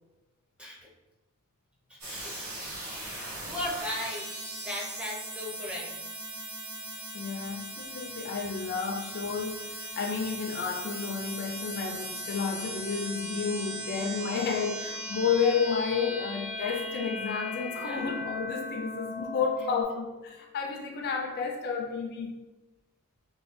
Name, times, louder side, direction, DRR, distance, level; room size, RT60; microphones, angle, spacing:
voice 1, 1.9-2.5 3.4-4.3 4.6-5.9 17.7-18.1, left 1 dB, 5° right, 0.5 m, -37 dB
sound 1, 2.0-19.8, equal, 70° right, 1.1 m, -38 dB
voice 2, 7.1-22.3, left 5 dB, 45° left, 0.3 m, -31 dB
3.0 x 2.2 x 3.1 m
head